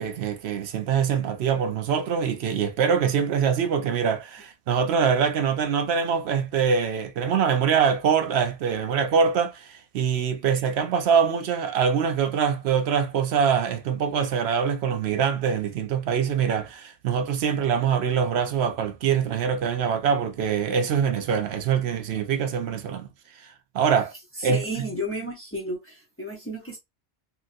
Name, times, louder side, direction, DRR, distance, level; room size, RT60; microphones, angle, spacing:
voice 1, 0.0-23.1 23.7-24.1 24.4-24.6, right 7 dB, 70° right, 0.8 m, -24 dB
voice 2, 24.4-26.8, equal, 15° left, 0.6 m, -32 dB
3.0 x 2.7 x 2.5 m
omnidirectional pair, 1.2 m